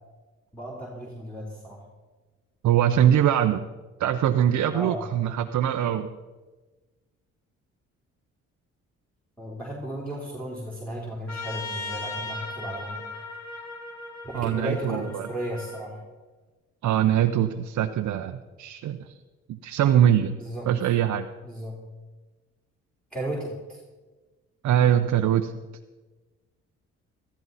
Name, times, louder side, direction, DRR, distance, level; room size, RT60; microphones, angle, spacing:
voice 1, 0.5-1.8 4.7-5.0 9.4-13.0 14.2-16.0 20.3-20.7 21.4-21.8 23.1-23.8, right 1 dB, 5° left, -6 dB, 3.6 m, -34 dB
voice 2, 2.6-3.7 4.0-6.1 14.3-15.3 16.8-19.1 19.5-20.4 20.7-21.3 24.6-25.5, right 10 dB, 70° right, 6 dB, 0.7 m, -22 dB
Trumpet, 11.3-15.8, left 3 dB, 65° left, 3.5 m, -37 dB
15.5 x 14.0 x 4.1 m, 1.2 s
cardioid pair, 90°, 30 cm